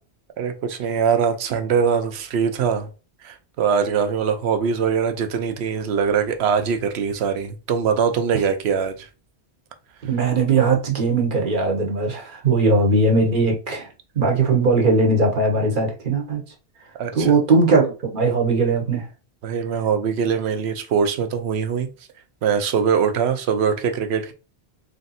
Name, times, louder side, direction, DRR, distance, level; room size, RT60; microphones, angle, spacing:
voice 1, 0.4-2.9 3.2-9.1 17.0-17.4 19.4-21.9 22.4-24.3, right 6 dB, 80° right, 0.9 m, -22 dB
voice 2, 10.0-13.9 14.1-16.4 17.1-19.1, right 3 dB, 50° right, 1.0 m, -19 dB
3.3 x 2.6 x 4.0 m
omnidirectional pair, 1.1 m